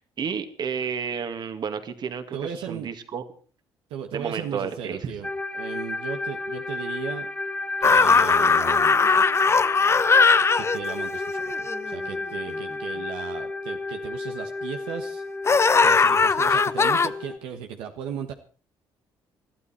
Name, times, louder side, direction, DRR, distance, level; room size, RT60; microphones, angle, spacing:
voice 1, 0.0-3.2 4.1-5.1, right 6 dB, 55° right, 9 dB, 2.2 m, -31 dB
voice 2, 2.3-2.9 3.9-7.3 7.8-9.0 10.5-15.2 15.8-18.3, right 8 dB, 85° right, 5 dB, 1.4 m, -36 dB
sound 1, 5.2-17.4, left 2 dB, 10° left, 2.1 m, -32 dB
sound 2, 7.8-12.2 15.5-17.1, left 5 dB, 30° left, 0.9 m, -19 dB
20.5 x 13.0 x 4.4 m, 0.41 s
supercardioid pair, 80°, 9 cm